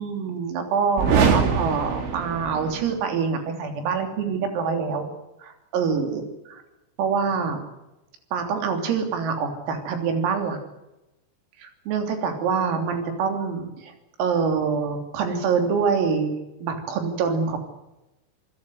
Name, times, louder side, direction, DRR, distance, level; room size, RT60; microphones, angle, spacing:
voice 1, 0.0-5.1 5.4-6.6 7.0-7.6 8.3-10.6 11.6-13.9 14.2-16.3 16.6-17.6, right 5 dB, 90° right, 5 dB, 5.9 m, -25 dB
sound 1, 1.0-3.0, right 6 dB, 65° right, 5.4 m, -23 dB
28.0 x 17.0 x 7.9 m, 0.96 s
omnidirectional pair, 5.9 m